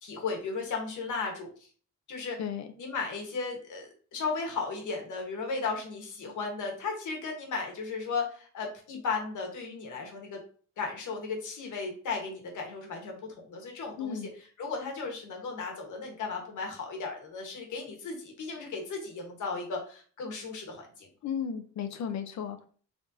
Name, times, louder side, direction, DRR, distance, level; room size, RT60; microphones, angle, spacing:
voice 1, 0.0-1.5 2.1-2.4 2.8-10.4 10.8-13.2 13.4-14.2 14.6-21.1, left 4 dB, 85° left, 2 dB, 1.3 m, -35 dB
voice 2, 14.0-14.3 21.2-22.7, left 7 dB, 65° left, 8 dB, 0.6 m, -34 dB
3.8 x 3.4 x 2.7 m, 0.43 s
wide cardioid pair, 160°, 30 cm